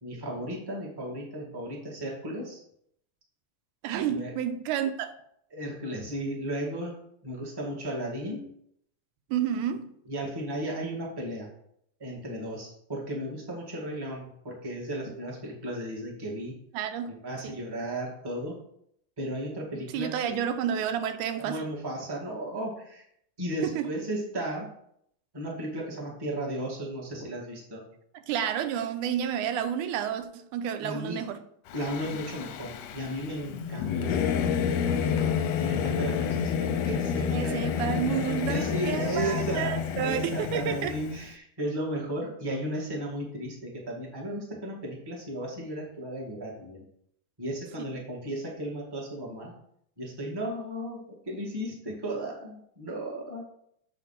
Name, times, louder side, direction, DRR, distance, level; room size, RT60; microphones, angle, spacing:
voice 1, 0.0-2.6 4.1-4.3 5.5-6.9 7.2-8.4 10.0-11.5 12.0-16.6 17.1-18.6 19.2-20.4 21.4-23.0 23.4-24.7 25.3-27.8 30.8-31.2 31.7-34.7 35.6-46.8 47.4-49.5 50.0-53.4, right 1 dB, 10° right, -2 dB, 1.1 m, -35 dB
voice 2, 3.8-5.2 9.3-9.9 16.7-17.1 17.4-17.6 19.9-21.6 23.6-23.9 28.3-31.4 37.3-41.0, right 9 dB, 90° right, 9 dB, 2.1 m, -30 dB
Singing / Musical instrument, 31.7-41.3, left 7 dB, 75° left, 1.6 m, -29 dB
7.4 x 4.5 x 5.7 m, 0.71 s
omnidirectional pair, 3.5 m